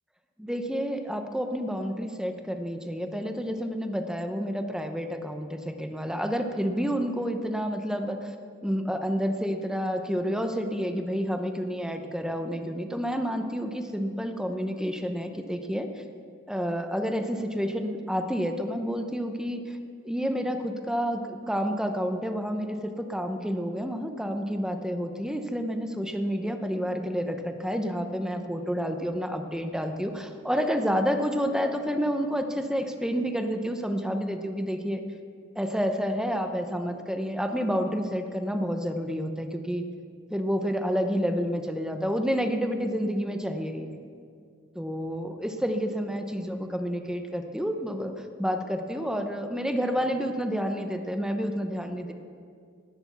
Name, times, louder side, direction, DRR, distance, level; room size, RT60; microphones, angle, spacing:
voice 1, 0.4-8.3 8.6-15.9 16.5-19.8 20.0-35.0 35.6-39.8 40.3-44.0 44.7-48.1 48.4-52.1, equal, 5° right, 6 dB, 0.8 m, -29 dB
18.5 x 6.9 x 7.1 m, 2.2 s
head